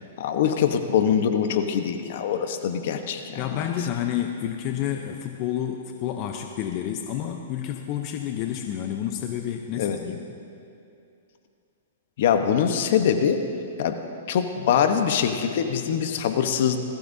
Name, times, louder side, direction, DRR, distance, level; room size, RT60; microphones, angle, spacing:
voice 1, 0.2-3.6 9.8-10.0 12.2-13.4 13.8-14.0 14.3-16.8, left 8 dB, 55° left, 7 dB, 1.1 m, -23 dB
voice 2, 3.4-10.2, left 10 dB, 35° left, 4 dB, 0.8 m, -29 dB
20.0 x 16.0 x 2.8 m, 2.6 s
hypercardioid pair, 145°, 0 cm